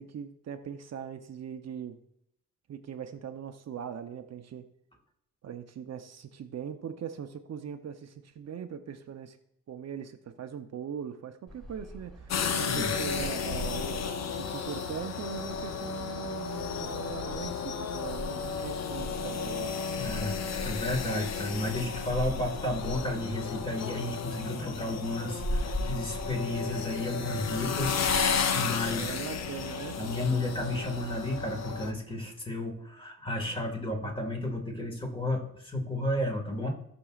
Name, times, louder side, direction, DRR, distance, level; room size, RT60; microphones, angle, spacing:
voice 1, 0.0-2.0 2.7-4.7 5.4-9.4 9.7-19.8 28.8-30.0, right 8 dB, 60° right, 7 dB, 0.7 m, -40 dB
sound 1, 11.5-29.4, equal, ahead, 2.5 m, -42 dB
sound 2, 12.3-31.9, left 6 dB, 60° left, 0.8 m, -33 dB
voice 2, 20.0-29.0 30.0-36.7, left 1 dB, 20° left, 1 dB, 1.8 m, -32 dB
17.0 x 6.1 x 2.4 m, 0.75 s
wide cardioid pair, 120°, 29 cm